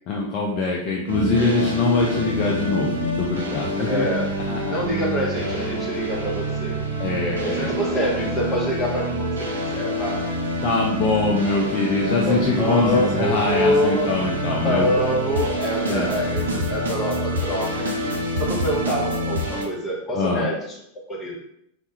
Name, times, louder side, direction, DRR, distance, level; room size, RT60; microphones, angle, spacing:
voice 1, 0.1-4.1 4.5-4.8 7.0-7.7 10.6-14.9 15.8-16.1 20.1-20.5, left 3 dB, 40° left, -2 dB, 0.3 m, -23 dB
sound 1, 1.1-19.6, right 1 dB, 70° right, 0.4 m, -27 dB
voice 2, 3.8-4.3 4.7-6.8 7.4-10.2 12.2-14.2 14.5-18.1 18.4-20.6 21.1-21.3, equal, 20° left, -3 dB, 0.7 m, -25 dB
2.2 x 2.1 x 2.7 m, 0.75 s
figure-of-eight pair, 90°, 0 cm